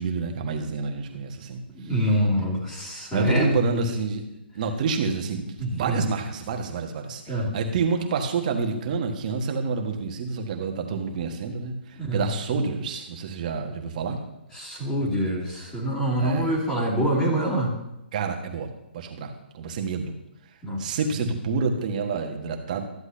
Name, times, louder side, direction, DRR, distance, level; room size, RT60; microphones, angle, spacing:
voice 1, 0.0-2.0 3.1-4.2 4.5-14.2 16.2-16.6 18.1-20.1 20.8-22.8, right 4 dB, 45° right, 3 dB, 1.5 m, -28 dB
voice 2, 1.8-3.5 5.6-6.0 7.3-7.5 12.1-12.2 14.5-17.7 20.6-20.9, equal, 15° left, -7 dB, 2.6 m, -25 dB
13.5 x 8.0 x 2.8 m, 0.90 s
hypercardioid pair, 135°, 6 cm